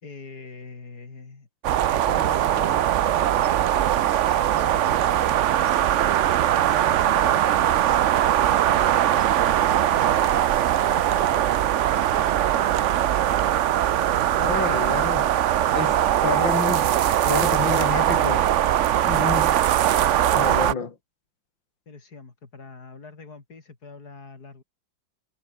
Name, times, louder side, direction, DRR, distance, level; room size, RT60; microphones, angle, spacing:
voice 1, 0.0-1.5 1.9-3.8 4.5-6.2 6.7-10.2 10.9-13.5 21.9-24.6, left 4 dB, 50° left, 3.8 m, -44 dB
sound 1, 1.6-20.7, right 11 dB, 80° right, 0.6 m, -21 dB
voice 2, 14.4-15.3 15.7-16.9 17.2-18.5 19.0-19.6 20.3-21.0, left 5 dB, 75° left, 3.4 m, -29 dB
omnidirectional pair, 2.1 m